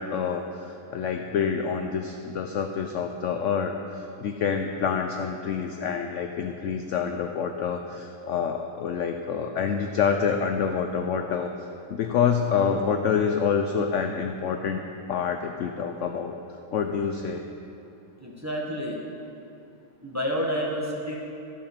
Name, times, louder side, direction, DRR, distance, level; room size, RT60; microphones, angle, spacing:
voice 1, 0.0-11.5 11.9-14.8 15.1-16.3 16.7-17.4, left 6 dB, 70° left, 5 dB, 0.7 m, -27 dB
voice 2, 18.2-19.0 20.0-21.2, equal, 10° right, -3 dB, 1.0 m, -29 dB
13.5 x 5.5 x 6.7 m, 2.7 s
omnidirectional pair, 1.8 m